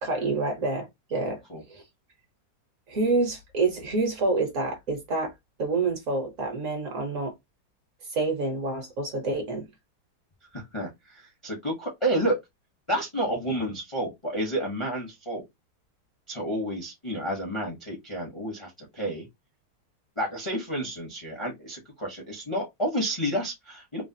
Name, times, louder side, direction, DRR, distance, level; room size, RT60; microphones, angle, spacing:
voice 1, 0.0-1.4 1.7-1.8 2.9-5.3 5.6-7.3 8.1-9.7, right 3 dB, 55° right, 1.0 m, -27 dB
voice 2, 10.5-12.4 12.9-15.4 16.3-19.3 20.2-24.0, right 1 dB, 35° left, 0.5 m, -30 dB
3.2 x 2.3 x 2.6 m
omnidirectional pair, 1.9 m